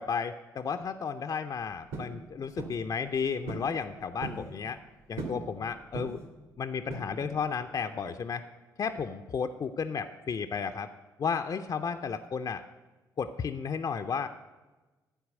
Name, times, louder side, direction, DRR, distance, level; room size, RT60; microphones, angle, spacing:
voice 1, 0.0-4.8 5.1-6.2 6.6-8.4 8.8-10.9 11.2-12.6 13.2-14.3, left 6 dB, 40° left, 8 dB, 0.5 m, -33 dB
sound 1, 1.9-2.2 2.6-2.8 3.5-3.7 4.0-4.5 5.2-5.5 5.9-6.3 6.9-7.4, right 3 dB, 65° right, 1.8 m, -38 dB
12.5 x 4.6 x 7.3 m, 1.2 s
figure-of-eight pair, 40°, 11 cm